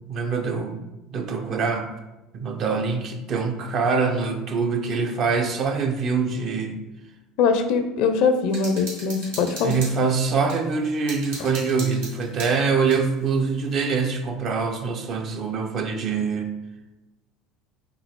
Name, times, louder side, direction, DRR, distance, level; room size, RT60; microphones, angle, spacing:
voice 1, 0.1-0.8 1.1-1.9 2.3-6.9 9.6-16.5, right 5 dB, 45° right, 5 dB, 0.5 m, -24 dB
voice 2, 7.4-9.8, left 5 dB, 60° left, 8 dB, 0.4 m, -22 dB
sound 1, 8.5-10.6 11.1-13.0, right 2 dB, 75° right, 1.4 m, -37 dB
5.2 x 2.4 x 3.4 m, 1.0 s
figure-of-eight pair, 70°, 0 cm